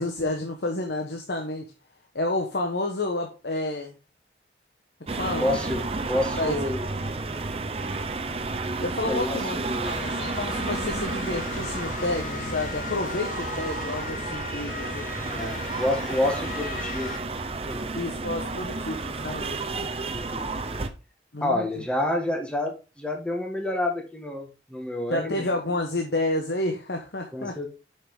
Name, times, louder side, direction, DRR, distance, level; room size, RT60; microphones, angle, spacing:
voice 1, 0.0-1.7 2.1-3.9 5.1-5.5 6.1-6.6 8.8-15.1 17.9-19.6 21.3-21.8 25.1-27.6, left 2 dB, 70° left, 3 dB, 1.1 m, -30 dB
sound 1, 5.1-20.9, right 3 dB, 35° right, 0.7 m, -32 dB
voice 2, 5.4-6.8 9.1-10.0 15.3-17.1 17.6-17.8 20.1-20.6 21.4-25.5 27.3-27.7, left 1 dB, 5° left, 1 dB, 1.5 m, -29 dB
Motor vehicle (road) / Siren, 9.8-17.2, left 3 dB, 50° left, 1.2 m, -36 dB
8.0 x 5.9 x 3.6 m, 0.31 s
head